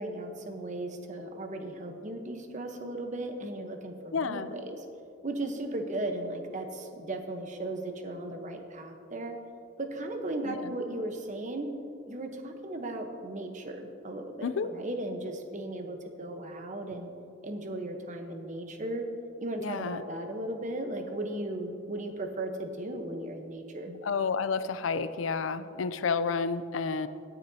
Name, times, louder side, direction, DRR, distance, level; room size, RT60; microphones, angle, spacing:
voice 1, 0.0-4.8 5.2-9.4 9.8-11.7 12.1-17.1 17.4-19.1 19.4-24.0, right 1 dB, 40° right, 5 dB, 1.0 m, -36 dB
voice 2, 4.1-4.5 10.4-10.7 14.4-14.7 19.6-20.0 24.0-27.1, left 5 dB, 90° left, 13 dB, 0.5 m, -30 dB
17.0 x 9.8 x 2.8 m, 2.7 s
head